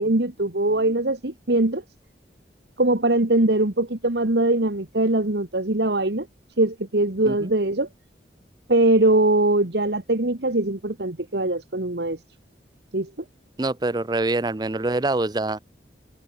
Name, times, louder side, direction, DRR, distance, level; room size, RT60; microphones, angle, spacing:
voice 1, 0.0-1.8 2.8-6.3 6.6-7.9 8.7-12.2 12.9-13.1, right 2 dB, 70° right, 1.8 m, -21 dB
voice 2, 13.6-15.6, right 2 dB, 25° right, 0.5 m, -25 dB
head